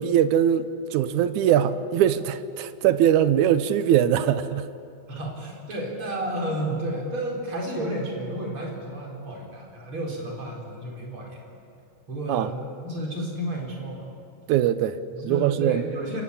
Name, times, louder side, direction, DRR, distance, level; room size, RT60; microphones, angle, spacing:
voice 1, 0.0-4.7 12.3-12.5 14.5-15.0 15.2-15.8, right 10 dB, 85° right, 12 dB, 2.2 m, -21 dB
voice 2, 5.1-11.5 12.1-14.1 15.1-16.2, right 1 dB, 45° right, -1 dB, 5.3 m, -32 dB
28.5 x 16.0 x 8.5 m, 2.5 s
omnidirectional pair, 3.5 m